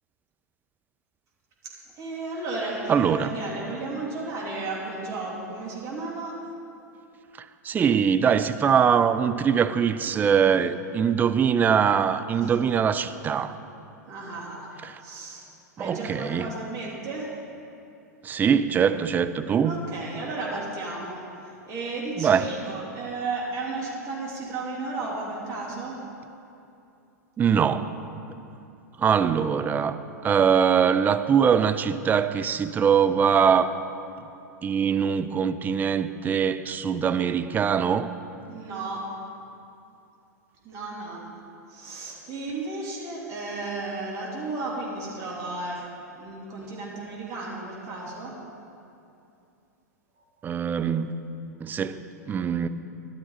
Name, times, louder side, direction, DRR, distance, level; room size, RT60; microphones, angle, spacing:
voice 1, 1.6-6.3 12.4-12.5 14.1-14.7 15.0-15.4 15.8-17.3 19.6-26.0 29.3-29.4 29.7-30.1 38.5-39.1 40.6-41.4 41.7-45.8 46.2-48.3 50.2-50.3, right 3 dB, 35° right, -5 dB, 3.3 m, -34 dB
voice 2, 2.9-3.3 7.4-13.6 14.8-14.9 15.8-16.5 18.2-19.7 22.2-22.4 27.4-27.9 29.0-30.0 30.2-33.7 34.6-38.1 50.4-51.2 51.6-52.7, right 7 dB, 20° right, 11 dB, 0.5 m, -22 dB
13.5 x 12.0 x 4.1 m, 2.7 s
figure-of-eight pair, 95°, 9 cm